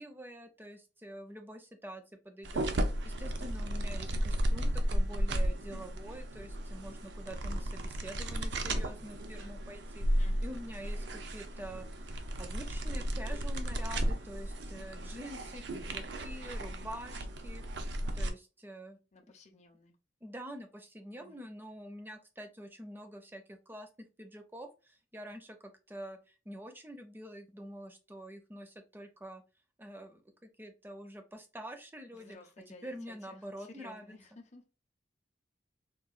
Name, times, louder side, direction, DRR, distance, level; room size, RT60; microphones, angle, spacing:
voice 1, 0.0-2.7 3.2-12.1 12.4-19.0 20.2-29.4 29.8-32.4 32.7-34.1, equal, 10° right, 0.5 m, -46 dB
sound 1, 2.4-18.3, right 1 dB, 65° right, 0.5 m, -34 dB
voice 2, 2.7-3.3 10.2-10.5 19.1-20.0 21.2-21.5 32.1-34.6, left 3 dB, 40° left, 0.6 m, -55 dB
3.8 x 2.3 x 2.3 m
head